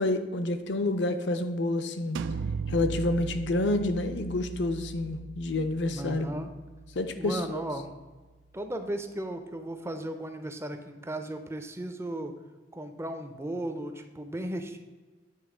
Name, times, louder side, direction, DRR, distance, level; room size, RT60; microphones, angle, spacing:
voice 1, 0.0-2.2 2.7-6.3 7.0-7.6, left 2 dB, 65° left, 9 dB, 0.6 m, -28 dB
sound 1, 2.2-7.8, right 5 dB, 80° right, 0.3 m, -38 dB
voice 2, 5.9-6.5 7.2-7.9 8.5-12.3 12.7-14.8, right 1 dB, 15° right, 6 dB, 0.5 m, -35 dB
9.3 x 3.1 x 4.9 m, 1.3 s
head